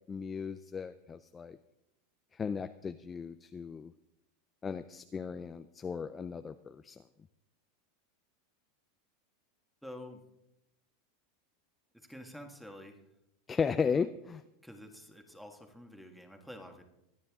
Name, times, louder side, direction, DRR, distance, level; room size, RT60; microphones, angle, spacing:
voice 1, 0.1-1.6 2.4-3.9 4.6-7.0 13.5-14.4, left 6 dB, 15° left, 10 dB, 0.4 m, -35 dB
voice 2, 9.8-10.2 11.9-13.0 14.6-16.8, left 1 dB, ahead, 4 dB, 1.7 m, -48 dB
24.0 x 9.6 x 3.7 m, 0.85 s
supercardioid pair, 145°, 0 cm